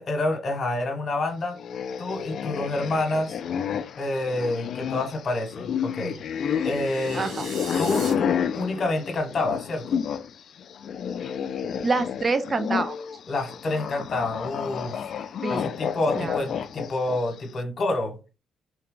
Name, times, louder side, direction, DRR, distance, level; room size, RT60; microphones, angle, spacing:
voice 1, 0.0-1.6 2.0-3.4 4.0-6.2 6.6-7.2 7.8-10.0 13.3-15.0 15.5-18.2, left 2 dB, 45° left, 1.2 m, -28 dB
sound 1, 1.5-10.3 10.6-17.4, left 8 dB, 60° left, 0.3 m, -30 dB
sound 2, 6.1-8.1, right 3 dB, 75° right, 1.3 m, -40 dB
voice 2, 7.1-7.5 11.8-12.9 15.4-15.7 16.2-16.5, right 3 dB, 30° right, 0.6 m, -26 dB
3.3 x 2.2 x 3.7 m
cardioid pair, 90°, 0 cm